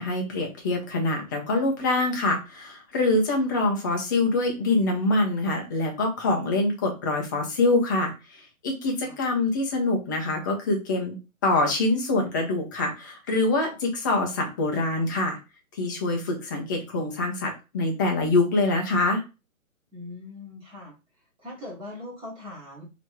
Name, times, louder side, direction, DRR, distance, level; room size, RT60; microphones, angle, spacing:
voice 1, 0.0-11.2 11.4-15.4 15.7-19.2, left 2 dB, 15° left, 1 dB, 0.5 m, -25 dB
voice 2, 19.9-20.9 21.4-22.8, left 2 dB, 10° right, -4 dB, 1.1 m, -40 dB
3.2 x 2.9 x 4.5 m, 0.29 s
figure-of-eight pair, 130°, 43 cm